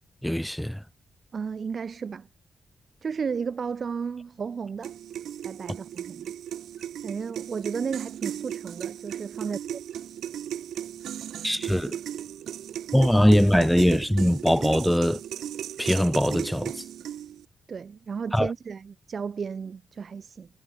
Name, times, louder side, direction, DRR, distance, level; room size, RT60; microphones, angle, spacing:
voice 1, 0.2-0.8 11.4-12.0 12.9-15.2 15.8-16.7 18.3-18.5, equal, 5° left, 0.8 m, -21 dB
voice 2, 1.3-2.3 3.0-4.9 5.4-6.3 7.0-9.8 17.7-20.5, right 6 dB, 55° right, 1.5 m, -33 dB
sound 1, 4.8-17.5, right 10 dB, 85° right, 1.7 m, -36 dB
cardioid pair, 75°, 0 cm